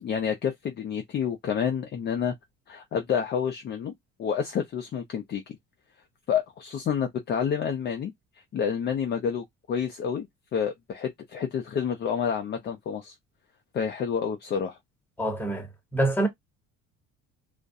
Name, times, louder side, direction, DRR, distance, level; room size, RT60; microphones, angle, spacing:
voice 1, 0.0-2.3 2.7-3.9 4.2-5.4 6.3-8.1 8.5-10.3 10.5-13.1 13.7-14.8, left 7 dB, 35° left, 0.4 m, -29 dB
voice 2, 15.2-16.3, right 1 dB, 5° left, 0.9 m, -26 dB
2.3 x 2.1 x 2.6 m
cardioid pair, 105°, 31 cm